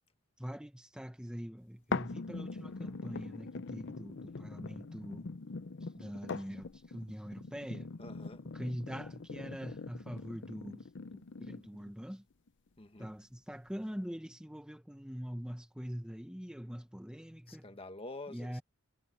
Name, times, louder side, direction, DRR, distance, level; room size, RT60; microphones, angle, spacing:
voice 1, 0.4-5.3 5.8-7.9 8.5-12.2 13.0-17.7 18.3-18.6, equal, 5° right, 1.1 m, -43 dB
sound 1, 1.9-11.9 12.5-12.6, left 4 dB, 55° left, 0.6 m, -42 dB
voice 2, 8.0-8.4 12.8-13.1 17.5-18.6, left 2 dB, 25° left, 1.7 m, -47 dB
head